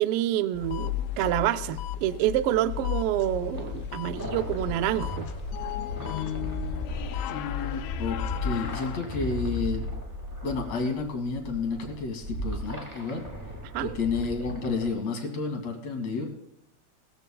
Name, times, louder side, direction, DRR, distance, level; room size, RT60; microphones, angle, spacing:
voice 1, 0.0-5.3 13.7-13.9, right 13 dB, 85° right, 11 dB, 1.2 m, -27 dB
sound 1, 0.5-9.0, left 11 dB, 80° left, 1.9 m, -34 dB
sound 2, 3.5-14.9, equal, 5° right, 2.4 m, -37 dB
voice 2, 6.9-9.9 10.4-13.2 13.8-16.3, left 4 dB, 65° left, 3 dB, 3.4 m, -31 dB
20.0 x 14.5 x 2.3 m, 0.77 s
omnidirectional pair, 3.3 m